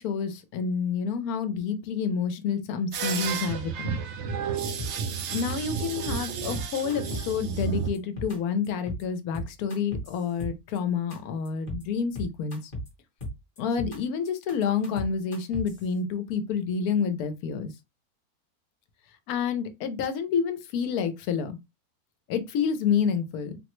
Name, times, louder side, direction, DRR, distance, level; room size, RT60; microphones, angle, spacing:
voice 1, 0.0-4.0 5.3-12.7 13.6-17.7 19.3-21.6 22.3-23.6, left 6 dB, 80° left, 1.1 m, -29 dB
sound 1, 2.9-7.9, right 7 dB, 65° right, 0.7 m, -32 dB
sound 2, 4.8-5.2 5.5-5.6 5.8-6.2 6.5-7.3 7.6-8.4 8.6-9.0 9.3-10.8 11.1-11.2 11.5-11.8 12.2-12.9 13.2-14.0 14.3-15.8, equal, 35° left, 0.9 m, -36 dB
3.8 x 2.0 x 3.0 m
omnidirectional pair, 1.6 m